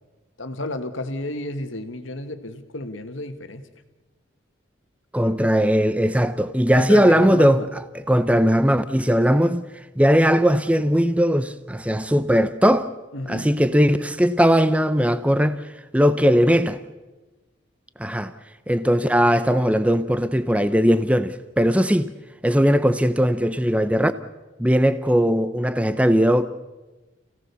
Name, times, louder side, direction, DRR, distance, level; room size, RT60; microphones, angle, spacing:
voice 1, 0.4-3.6 6.7-7.7 13.1-13.5, left 1 dB, 75° left, 1.9 m, -31 dB
voice 2, 5.1-7.6 8.1-9.6 10.0-12.9 13.3-15.6 15.9-16.8 18.0-18.3 18.7-22.1 22.4-24.1 24.6-26.5, equal, 5° right, 0.6 m, -19 dB
29.0 x 17.0 x 6.9 m
head